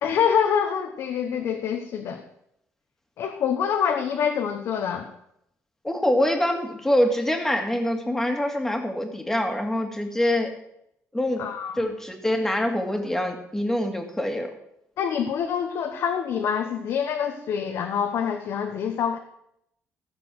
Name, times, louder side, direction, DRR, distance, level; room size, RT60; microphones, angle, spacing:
voice 1, 0.0-2.2 3.2-5.1 11.4-11.9 15.0-19.2, left 7 dB, 70° left, 4 dB, 1.2 m, -26 dB
voice 2, 5.8-10.5 11.1-11.5 11.8-14.5, left 1 dB, 5° left, 3 dB, 2.1 m, -25 dB
15.5 x 6.9 x 6.3 m, 0.77 s
cardioid pair, 130°, 5 cm